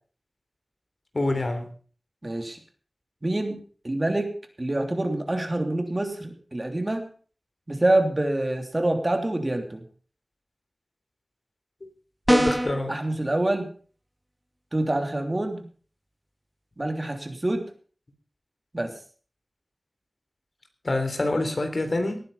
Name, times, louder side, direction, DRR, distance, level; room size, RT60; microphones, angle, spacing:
voice 1, 1.1-1.7 12.3-12.9 20.8-22.2, left 2 dB, 55° left, 7 dB, 3.5 m, -26 dB
voice 2, 2.2-2.6 3.2-3.6 3.8-4.3 4.6-7.1 7.7-9.8 12.9-13.7 14.7-15.6 16.8-17.7 18.7-18.9, right 1 dB, 35° right, 5 dB, 3.1 m, -26 dB
sound 1, 12.3-12.8, right 1 dB, 10° right, 1.1 m, -21 dB
19.0 x 9.9 x 5.6 m, 0.42 s
wide cardioid pair, 65°, 0 cm